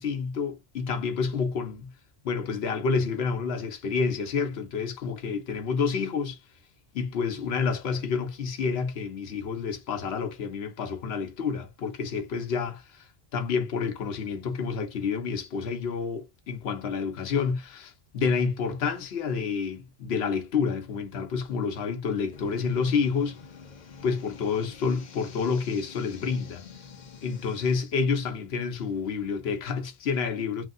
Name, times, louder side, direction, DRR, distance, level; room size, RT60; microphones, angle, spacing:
voice 1, 0.0-1.9 2.2-6.4 6.9-13.1 13.3-23.4 24.0-26.6 27.2-30.6, left 5 dB, 80° left, 1.0 m, -29 dB
sound 1, 22.3-27.8, left 5 dB, 50° left, 0.7 m, -47 dB
3.2 x 2.6 x 2.4 m
omnidirectional pair, 1.1 m